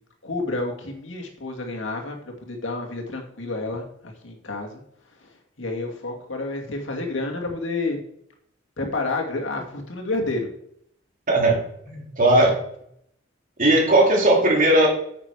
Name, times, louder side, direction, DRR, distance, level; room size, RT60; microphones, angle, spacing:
voice 1, 0.2-4.8 5.2-5.3 5.6-8.0 8.8-10.5, left 2 dB, 80° left, 1 dB, 2.2 m, -29 dB
voice 2, 11.3-11.6 11.9-12.6 13.6-14.9, right 1 dB, 45° right, -1 dB, 2.7 m, -17 dB
9.5 x 6.7 x 4.9 m, 0.70 s
head